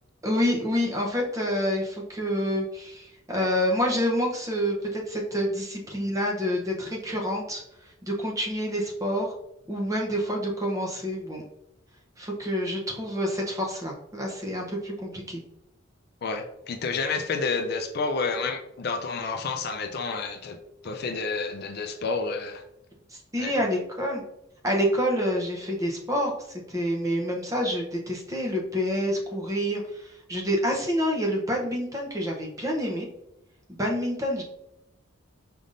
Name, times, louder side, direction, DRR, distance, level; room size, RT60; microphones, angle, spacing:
voice 1, 0.2-7.6 8.0-9.3 9.7-11.4 12.2-15.4 23.3-24.2 24.6-26.3 26.7-33.1 33.7-34.4, equal, 15° right, -1 dB, 0.7 m, -27 dB
voice 2, 16.2-20.6 20.8-22.6 23.4-23.5, left 4 dB, 50° left, 6 dB, 0.4 m, -30 dB
5.2 x 3.4 x 2.6 m, 0.85 s
head